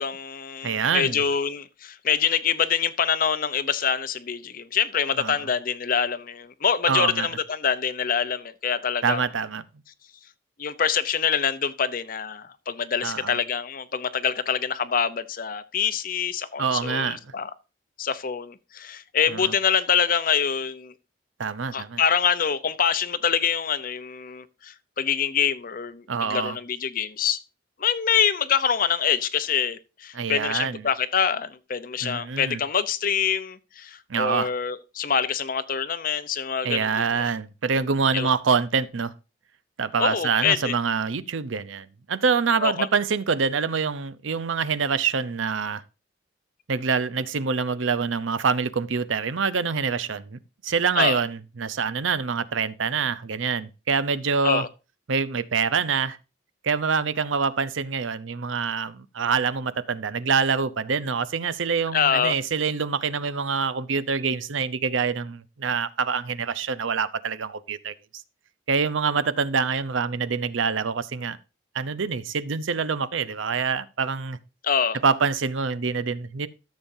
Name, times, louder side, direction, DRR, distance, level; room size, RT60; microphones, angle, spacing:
voice 1, 0.0-9.2 10.6-17.5 18.0-20.9 21.7-27.4 27.8-37.3 38.1-38.3 40.0-40.7 42.6-42.9 51.0-51.2 54.4-54.7 61.9-62.3 74.6-75.0, left 7 dB, 45° left, 0.6 m, -25 dB
voice 2, 0.6-1.2 5.2-5.3 6.9-7.3 9.0-9.6 13.0-13.4 16.6-17.2 19.3-19.5 21.4-22.0 26.1-26.6 30.1-30.8 32.0-32.6 34.1-34.5 36.6-39.1 39.8-45.8 46.7-54.7 55.1-56.2 56.6-67.9 68.7-71.4 71.7-74.4 75.0-76.5, right 5 dB, 75° right, 0.6 m, -25 dB
13.5 x 7.2 x 2.7 m
head